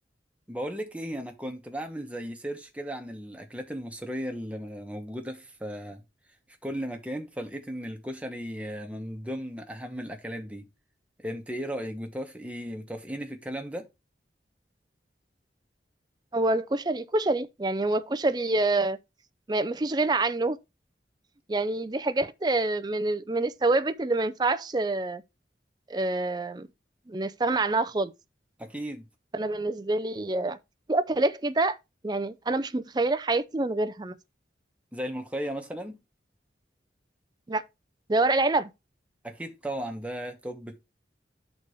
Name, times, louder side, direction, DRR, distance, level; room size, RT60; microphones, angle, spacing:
voice 1, 0.5-6.0 6.6-10.6 11.2-13.9 28.6-29.1 34.9-36.0 39.2-40.8, equal, 5° right, 1.1 m, -36 dB
voice 2, 16.3-19.0 19.5-20.6 21.5-25.2 25.9-26.7 27.1-28.1 29.3-30.6 30.9-31.8 32.0-34.2 37.5-37.6 38.1-38.7, right 2 dB, 25° right, 0.4 m, -26 dB
8.2 x 4.1 x 4.8 m
head